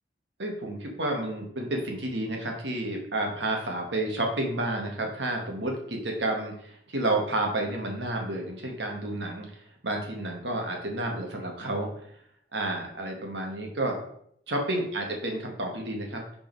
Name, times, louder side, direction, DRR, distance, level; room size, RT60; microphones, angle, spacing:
voice 1, 0.4-9.4 9.8-11.9 12.5-14.0 14.5-16.2, right 1 dB, 85° right, 1 dB, 1.6 m, -30 dB
5.3 x 5.2 x 4.6 m, 0.68 s
head